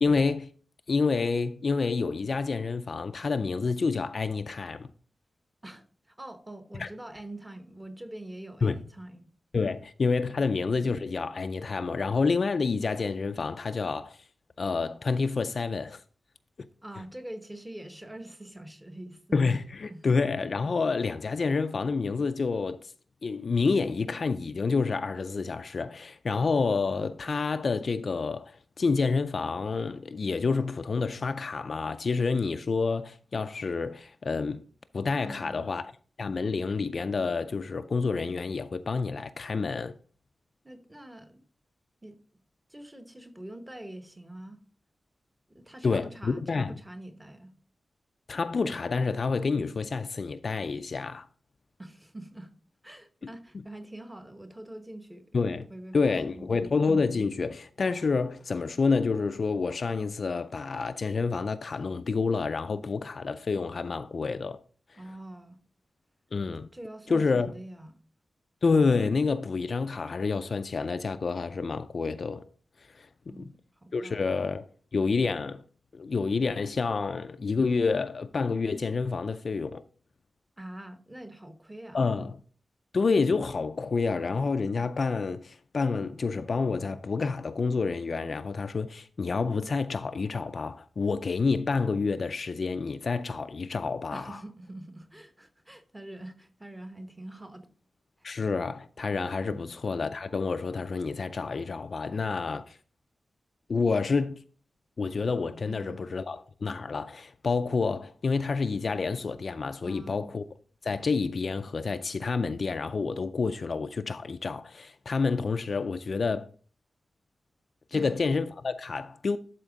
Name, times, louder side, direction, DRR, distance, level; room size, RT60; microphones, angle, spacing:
voice 1, 0.0-0.5 0.9-4.9 6.8-6.9 8.6-8.8 9.5-14.2 14.6-16.0 16.6-16.7 19.3-22.9 23.2-34.6 34.9-35.8 36.2-40.0 45.8-46.8 48.3-51.3 53.2-53.3 55.3-55.7 55.9-64.6 64.9-65.0 66.3-66.7 67.1-67.5 68.6-72.4 72.9-73.5 73.9-75.6 75.9-79.8 81.9-82.4 82.9-94.4 98.2-102.8 103.7-104.4 105.0-110.4 110.8-116.5 117.9-119.4, left 4 dB, 45° left, 0.3 m, -28 dB
voice 2, 5.6-9.3 10.3-10.5 16.8-19.4 19.9-20.1 35.2-35.7 40.6-41.4 42.0-42.2 42.7-44.6 45.5-47.5 51.8-52.5 52.8-56.6 64.9-65.6 66.7-67.9 73.3-74.4 80.6-82.0 94.1-97.7 98.2-98.3 99.5-99.7 105.7-106.0 109.8-110.3 117.9-118.2, right 1 dB, 10° right, 0.9 m, -45 dB
12.0 x 4.3 x 3.8 m
wide cardioid pair, 170°, 0 cm